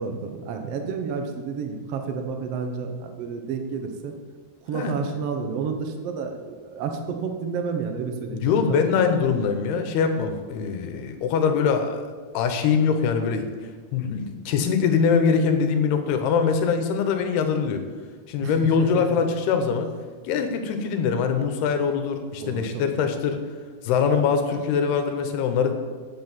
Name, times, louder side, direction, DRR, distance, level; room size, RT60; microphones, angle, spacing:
voice 1, 0.0-4.1 4.6-8.8 18.4-19.2 22.4-23.0, right 5 dB, 90° right, 5 dB, 1.3 m, -30 dB
voice 2, 8.4-12.1 12.3-13.5 13.9-17.8 18.3-19.9 20.2-23.4 23.8-25.7, left 6 dB, 90° left, 7 dB, 3.0 m, -23 dB
8.5 x 8.2 x 7.2 m, 1.5 s
omnidirectional pair, 4.4 m